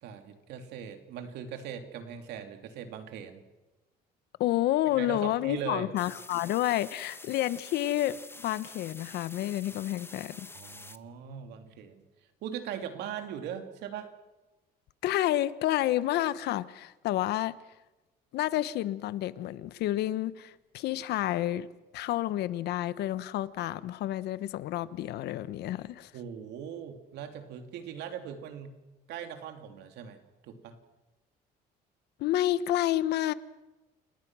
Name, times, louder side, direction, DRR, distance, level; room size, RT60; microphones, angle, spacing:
voice 1, 0.0-3.4 5.0-5.9 10.5-12.0 12.4-14.1 26.1-28.8 29.1-30.8, right 8 dB, 85° right, 3.0 m, -40 dB
voice 2, 4.4-10.5 15.0-17.6 18.3-21.7 21.9-26.1 32.2-33.3, left 14 dB, 75° left, 1.0 m, -29 dB
sound 1, 6.0-11.0, left 3 dB, 15° left, 1.0 m, -47 dB
28.5 x 19.5 x 6.2 m
cardioid pair, 110°, 17 cm